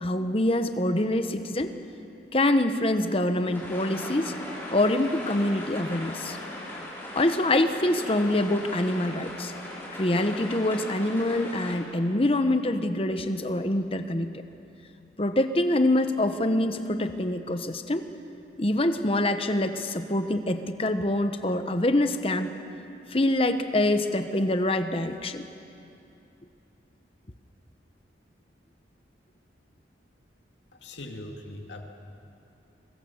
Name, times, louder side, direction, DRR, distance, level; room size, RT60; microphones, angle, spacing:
voice 1, 0.0-1.7 2.3-4.3 4.7-6.4 7.1-9.5 10.0-14.3 15.2-18.1 18.6-22.6 23.1-25.5, left 1 dB, 30° left, 8 dB, 1.0 m, -25 dB
sound 1, 3.5-11.7, left 1 dB, 10° left, 4.8 m, -38 dB
voice 2, 30.8-31.8, left 1 dB, 75° left, 2 dB, 2.2 m, -40 dB
25.0 x 23.5 x 7.2 m, 2.7 s
head